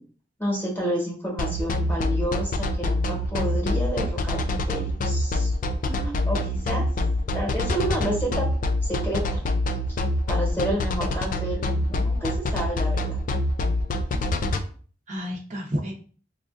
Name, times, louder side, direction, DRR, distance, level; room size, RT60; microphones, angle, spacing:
voice 1, 0.4-5.6 6.0-6.8 7.3-8.5 8.8-9.4 10.3-13.2, equal, 10° left, -3 dB, 1.2 m, -30 dB
sound 1, 1.4-14.6, left 2 dB, 45° left, 0.4 m, -25 dB
voice 2, 5.8-6.4 14.1-14.5 15.1-15.9, equal, 40° right, -2 dB, 0.7 m, -33 dB
4.9 x 2.4 x 2.4 m, 0.42 s
head